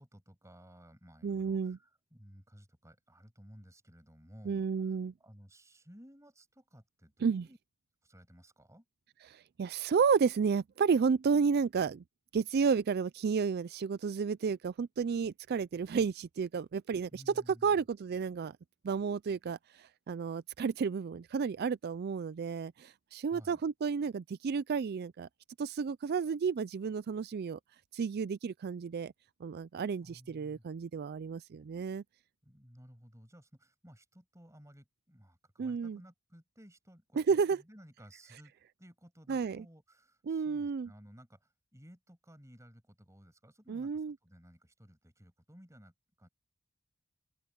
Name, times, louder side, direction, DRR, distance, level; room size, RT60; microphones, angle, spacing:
voice 1, 0.0-7.6 8.0-8.8 17.1-17.8 23.3-23.6 30.0-30.6 32.4-38.5 38.8-46.3, equal, 15° right, 6.8 m, -57 dB
voice 2, 1.2-1.8 4.5-5.1 7.2-7.5 9.3-12.0 12.3-17.3 17.6-18.5 18.8-25.3 25.6-27.6 27.9-29.1 29.4-32.0 35.6-36.0 37.2-37.6 39.3-39.6 40.3-40.9 43.7-44.1, right 5 dB, 45° right, 0.3 m, -32 dB
head